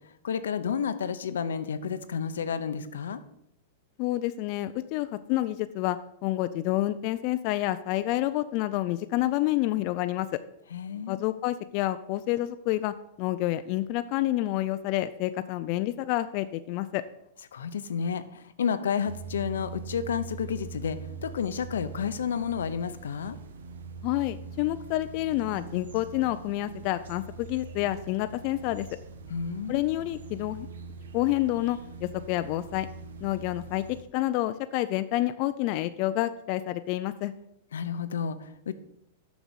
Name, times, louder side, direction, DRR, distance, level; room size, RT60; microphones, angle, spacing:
voice 1, 0.2-3.2 10.7-11.2 17.5-23.4 29.3-29.8 37.7-38.7, left 7 dB, 90° left, 11 dB, 0.7 m, -31 dB
voice 2, 4.0-10.4 11.1-17.0 24.0-28.9 29.7-30.7 31.1-32.9 33.2-37.3, left 15 dB, 45° left, 11 dB, 0.4 m, -28 dB
sound 1, 19.1-34.0, right 5 dB, 90° right, 1.0 m, -43 dB
7.3 x 6.0 x 6.9 m, 0.79 s
hypercardioid pair, 130°, 0 cm